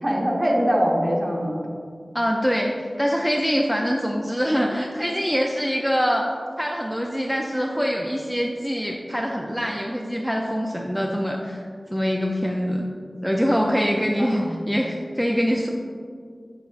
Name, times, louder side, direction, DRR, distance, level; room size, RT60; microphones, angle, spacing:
voice 1, 0.0-1.6 14.2-14.6, equal, 30° right, -2 dB, 1.1 m, -23 dB
voice 2, 2.1-6.3 6.6-11.6 11.9-12.9 13.2-15.7, equal, ahead, 0 dB, 0.4 m, -24 dB
6.9 x 6.2 x 2.4 m, 2.1 s
wide cardioid pair, 70°, 0 cm